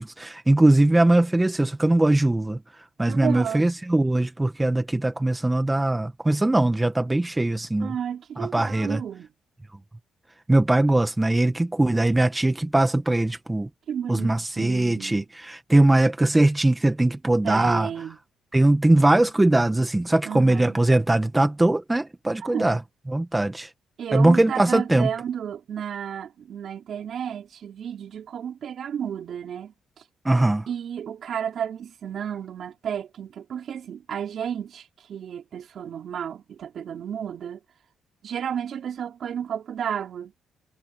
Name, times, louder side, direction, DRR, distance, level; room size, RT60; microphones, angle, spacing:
voice 1, 0.0-2.6 3.0-7.9 8.4-9.0 10.5-13.7 14.1-17.9 18.5-22.8 23.1-23.7 24.1-25.1 30.2-30.7, right 2 dB, 15° right, 1.5 m, -21 dB
voice 2, 3.1-3.6 7.8-9.3 13.9-15.2 17.4-18.2 20.2-20.8 22.4-22.8 24.0-29.7 30.7-37.6 38.2-40.3, right 8 dB, 60° right, 4.9 m, -32 dB
cardioid pair, 90°, 0 cm